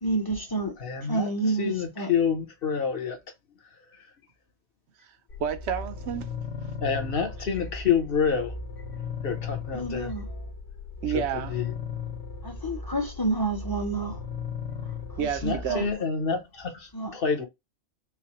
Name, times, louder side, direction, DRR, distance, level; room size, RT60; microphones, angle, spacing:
voice 1, 0.0-0.7 1.0-2.1 9.7-10.2 12.4-14.2 15.2-15.9 16.9-17.2, right 2 dB, 25° left, 0.6 m, -29 dB
voice 2, 0.8-1.3 1.6-3.2 6.8-8.5 9.2-10.1 11.5-11.6 15.4-17.5, left 6 dB, 55° left, 1.0 m, -27 dB
sound 1, 5.3-15.9, left 5 dB, 80° left, 1.2 m, -37 dB
voice 3, 5.4-6.3 7.4-7.5 11.0-11.6 15.2-15.9, right 8 dB, 75° right, 0.9 m, -30 dB
4.7 x 2.1 x 2.9 m
omnidirectional pair, 1.1 m